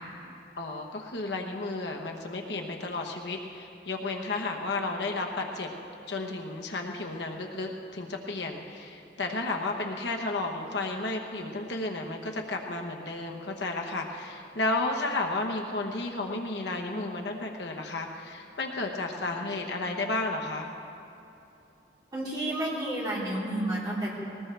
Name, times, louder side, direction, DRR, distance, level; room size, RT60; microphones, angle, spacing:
voice 1, 0.6-5.7 6.1-20.7, left 2 dB, 65° left, 2 dB, 1.1 m, -32 dB
voice 2, 22.1-24.1, right 1 dB, 20° right, -7 dB, 3.9 m, -30 dB
20.5 x 18.5 x 3.4 m, 2.7 s
head